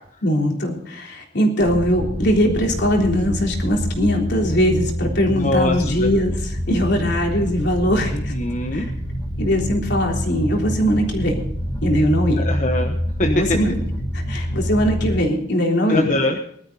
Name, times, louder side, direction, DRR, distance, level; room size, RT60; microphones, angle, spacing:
voice 1, 0.2-8.3 8.7-8.9 9.4-11.4 11.8-12.5 13.2-13.8 14.1-16.1, equal, 65° left, 1 dB, 3.6 m, -21 dB
sound 1, 1.6-15.2, equal, 10° left, 4.1 m, -26 dB
voice 2, 5.3-6.1 8.1-8.9 12.4-13.3 15.9-16.4, left 2 dB, 45° left, 3 dB, 1.2 m, -23 dB
19.5 x 13.0 x 4.0 m, 0.67 s
head